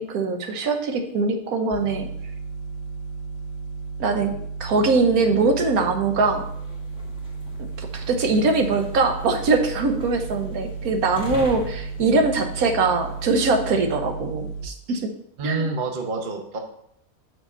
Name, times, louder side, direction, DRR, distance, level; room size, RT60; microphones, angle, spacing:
voice 1, 0.0-2.1 4.0-4.3 4.6-6.5 7.8-15.1 15.4-15.7, right 3 dB, 75° right, 5 dB, 1.4 m, -22 dB
sound 1, 1.7-14.7, right 4 dB, 65° left, 0.6 m, -34 dB
sound 2, 6.0-13.8, left 1 dB, 5° right, 1.5 m, -42 dB
voice 2, 15.4-16.6, right 3 dB, 40° right, 4 dB, 0.9 m, -27 dB
6.2 x 4.9 x 5.3 m, 0.71 s
omnidirectional pair, 1.6 m